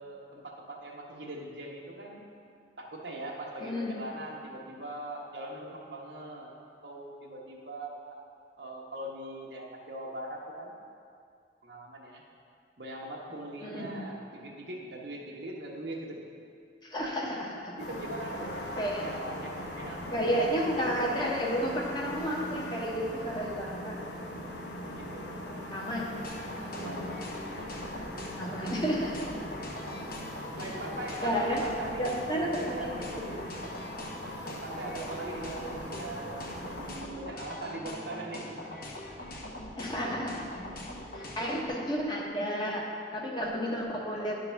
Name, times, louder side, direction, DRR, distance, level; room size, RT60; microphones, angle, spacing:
voice 1, 0.0-2.2 2.8-6.5 6.8-8.2 8.6-10.7 11.6-12.2 12.8-16.2 17.8-20.6 24.8-25.3 26.7-27.1 30.6-32.1 32.5-33.5 34.4-38.6, right 1 dB, 80° right, -2 dB, 1.2 m, -41 dB
voice 2, 3.6-4.0 13.6-14.0 16.8-17.7 18.8-19.0 20.1-24.0 25.7-26.1 26.6-27.0 28.4-29.2 31.2-31.6 32.0-33.3 39.8-40.7 41.1-44.3, equal, 25° left, -2 dB, 1.1 m, -32 dB
sound 1, 17.8-37.0, left 1 dB, 85° left, 1.0 m, -40 dB
sound 2, 26.2-41.7, left 1 dB, 55° left, 1.1 m, -42 dB
10.5 x 3.9 x 5.7 m, 2.4 s
head